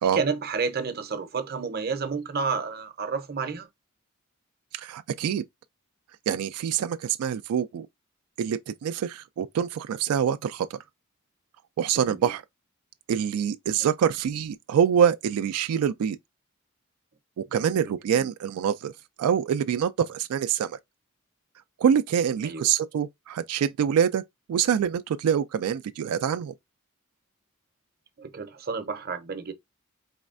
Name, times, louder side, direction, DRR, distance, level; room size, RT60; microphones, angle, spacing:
voice 1, 0.1-3.7 12.0-12.3 17.5-17.9 22.4-22.7 28.2-29.5, right 5 dB, 45° right, 0.6 m, -30 dB
voice 2, 4.7-5.4 6.3-7.9 8.4-10.8 11.8-12.4 13.1-16.2 17.4-18.9 19.2-20.8 21.8-24.2 24.5-26.5, right 8 dB, 90° right, 0.3 m, -25 dB
4.2 x 3.1 x 2.4 m
head